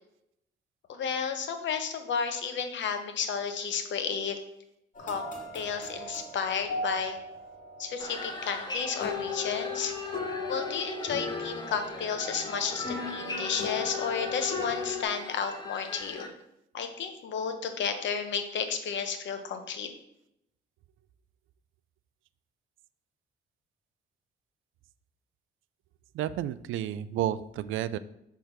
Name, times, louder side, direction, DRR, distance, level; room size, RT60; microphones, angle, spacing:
voice 1, 0.9-4.4 5.0-5.2 5.5-7.2 7.8-9.9 10.5-16.3 16.7-19.9, left 6 dB, 65° left, 7 dB, 1.0 m, -32 dB
sound 1, 4.9-15.0, left 4 dB, 40° left, 2.0 m, -37 dB
sound 2, 8.0-16.3, left 2 dB, 20° left, 1.0 m, -40 dB
voice 2, 26.1-28.0, right 12 dB, 80° right, 15 dB, 0.4 m, -31 dB
6.3 x 3.4 x 6.0 m, 0.81 s
cardioid pair, 90°, 20 cm